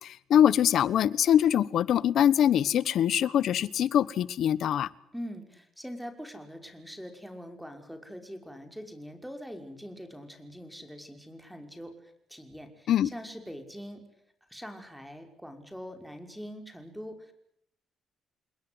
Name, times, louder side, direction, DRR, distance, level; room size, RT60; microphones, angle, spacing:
voice 1, 0.0-4.9 12.9-13.1, left 10 dB, 70° left, 19 dB, 1.2 m, -23 dB
voice 2, 5.1-14.0 14.5-17.3, equal, ahead, 6 dB, 5.7 m, -43 dB
29.0 x 20.5 x 8.0 m, 0.73 s
cardioid pair, 90°, 0 cm